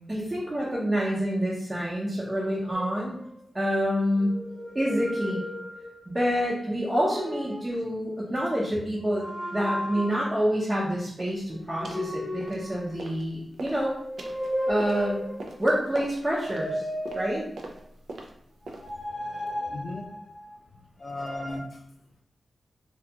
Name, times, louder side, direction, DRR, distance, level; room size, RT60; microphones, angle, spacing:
voice 1, 0.1-3.2 3.5-4.4 4.7-5.4 6.1-13.9 14.7-15.2 15.6-16.9 17.1-17.4, equal, 25° right, -6 dB, 0.5 m, -27 dB
sound 1, 2.7-3.7 4.2-6.2 6.8-7.7 9.0-10.5 11.7-13.4 13.9-15.6 16.2-17.8 18.6-20.5 21.0-21.6, equal, 30° left, 0.8 m, -35 dB
sound 2, 11.2-11.4 11.8-12.1 12.4-13.2 13.5-19.1, right 2 dB, 85° right, 0.3 m, -43 dB
voice 2, 19.1-20.1 21.0-21.8, left 2 dB, 70° left, 5 dB, 0.3 m, -38 dB
2.3 x 2.2 x 2.7 m, 0.71 s
wide cardioid pair, 100°, 0 cm